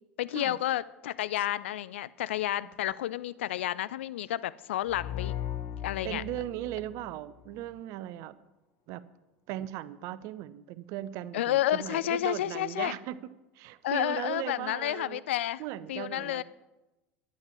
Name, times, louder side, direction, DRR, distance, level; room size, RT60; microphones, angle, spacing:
voice 1, 0.2-5.3 5.8-6.2 11.3-12.9 13.8-15.6 15.9-16.4, left 13 dB, 65° left, 18 dB, 0.5 m, -30 dB
sound 1, 4.8-7.7, left 11 dB, 40° left, 1.0 m, -38 dB
voice 2, 6.0-8.4 8.9-9.0 9.5-13.3 13.5-15.2 15.6-16.4, right 13 dB, 50° right, 17 dB, 0.6 m, -38 dB
11.5 x 8.6 x 7.3 m, 1.0 s
figure-of-eight pair, 75°, 7 cm